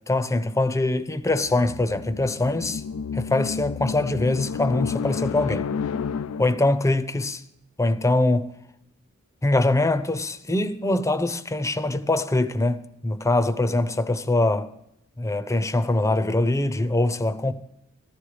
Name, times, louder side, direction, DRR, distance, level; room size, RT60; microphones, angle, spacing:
voice 1, 0.1-2.8 3.1-5.7 6.4-7.4 7.8-8.5 9.4-14.7 15.2-17.5, left 2 dB, 15° left, 0.6 m, -23 dB
sound 1, 1.3-6.8, left 6 dB, 90° left, 0.4 m, -31 dB
14.5 x 13.0 x 5.0 m
head